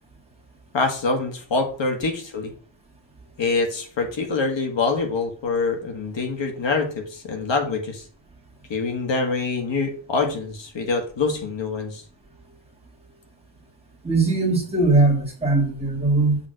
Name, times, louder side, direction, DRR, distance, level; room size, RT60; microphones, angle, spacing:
voice 1, 0.7-2.5 3.4-8.0 8.7-12.0, left 4 dB, 70° left, 4 dB, 1.6 m, -25 dB
voice 2, 14.0-16.4, right 3 dB, 15° right, -3 dB, 2.0 m, -20 dB
7.3 x 3.3 x 6.3 m, 0.42 s
wide cardioid pair, 175°, 46 cm